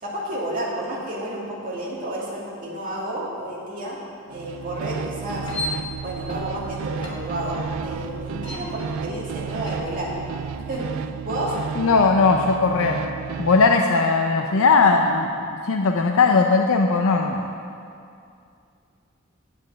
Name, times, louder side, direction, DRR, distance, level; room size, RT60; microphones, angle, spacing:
voice 1, 0.0-4.0 4.3-5.5 6.0-10.1 10.7-10.9 11.2-11.5, right 1 dB, 40° right, -5 dB, 2.4 m, -31 dB
sound 1, 4.3-13.9, right 6 dB, 85° right, 0.4 m, -32 dB
sound 2, 5.3-10.8, left 2 dB, 25° left, 1.6 m, -37 dB
voice 2, 11.8-13.0 13.4-17.5, left 4 dB, 90° left, 3 dB, 0.6 m, -19 dB
9.0 x 7.8 x 7.3 m, 2.5 s
head